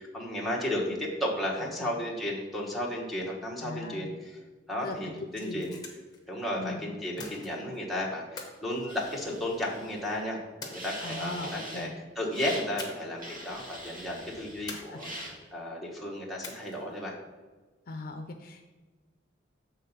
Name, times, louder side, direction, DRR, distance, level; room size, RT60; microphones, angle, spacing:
voice 1, 0.0-4.4 4.7-5.8 6.3-11.9 12.1-17.1, left 1 dB, ahead, -4 dB, 1.2 m, -34 dB
voice 2, 3.6-4.1 4.8-5.0 5.4-5.6 6.6-6.8 11.0-11.9 14.7-15.0 17.9-18.6, left 2 dB, 50° left, 4 dB, 0.5 m, -39 dB
sound 1, 5.3-6.2 7.2-7.8 8.4-9.6 10.6-11.4 12.8-13.2 13.5-13.6 14.7-15.4 16.4-17.0, left 3 dB, 20° left, 1.1 m, -44 dB
sound 2, 8.9-10.2 10.7-11.9 12.3-12.7 13.2-14.7 15.0-15.3, right 1 dB, 45° right, 1.7 m, -42 dB
7.6 x 3.9 x 5.6 m, 1.3 s
head